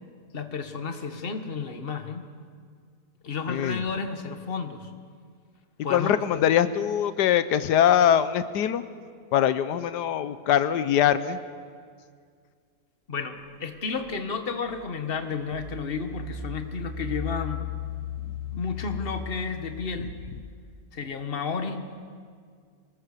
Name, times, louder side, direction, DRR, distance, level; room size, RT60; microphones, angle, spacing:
voice 1, 0.3-2.3 3.2-4.9 5.8-6.5 13.1-17.7 18.5-20.2 20.9-21.9, left 5 dB, 35° left, 7 dB, 1.6 m, -32 dB
voice 2, 3.5-3.8 5.9-8.8 9.3-11.4, left 10 dB, 90° left, 13 dB, 1.4 m, -22 dB
Engine, 14.0-14.1 14.7-20.6, left 5 dB, 75° right, 3.9 m, -37 dB
26.0 x 19.5 x 6.7 m, 2.1 s
omnidirectional pair, 1.7 m